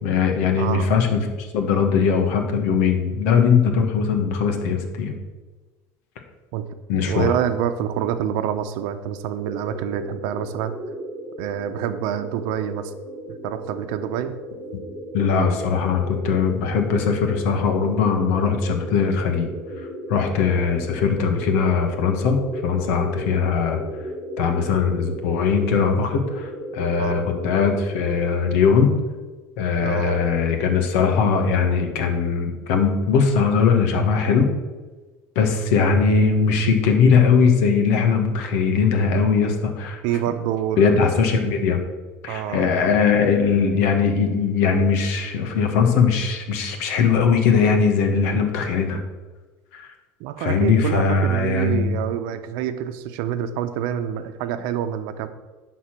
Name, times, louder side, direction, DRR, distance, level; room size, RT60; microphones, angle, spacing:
voice 1, 0.0-5.1 6.9-7.3 15.1-19.5 20.1-23.8 24.4-29.0 29.6-34.5 35.3-40.0 40.8-41.8 42.2-49.0 49.7-49.9 50.4-51.9, left 5 dB, 80° left, 5 dB, 1.5 m, -20 dB
voice 2, 0.6-0.9 1.7-1.8 6.5-6.7 7.0-10.7 11.4-12.9 13.4-14.4 27.0-27.3 29.8-30.2 40.0-41.1 42.3-42.7 50.2-55.3, right 10 dB, 70° right, 9 dB, 0.8 m, -27 dB
sound 1, 9.4-28.3, equal, 5° right, 3.0 m, -35 dB
11.0 x 4.2 x 6.1 m, 1.3 s
supercardioid pair, 105°, 8 cm